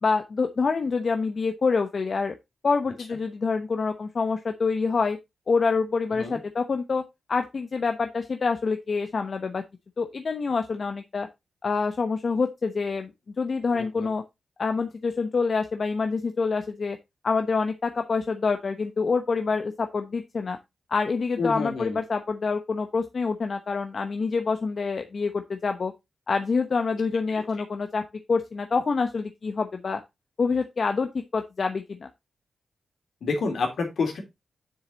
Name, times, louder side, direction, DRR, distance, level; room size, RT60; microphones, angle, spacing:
voice 1, 0.0-2.3 2.6-5.2 5.5-7.0 7.3-9.6 10.0-11.3 11.6-13.1 13.4-14.2 14.6-17.0 17.2-20.6 20.9-25.9 26.3-28.0 28.3-30.0 30.4-32.1, left 4 dB, 55° left, 7 dB, 0.9 m, -26 dB
voice 2, 6.1-6.4 13.7-14.1 21.4-22.0 27.3-27.4 33.2-34.2, left 4 dB, 75° left, 3 dB, 3.1 m, -29 dB
7.3 x 6.7 x 3.9 m, 0.22 s
cardioid pair, 60°, 0 cm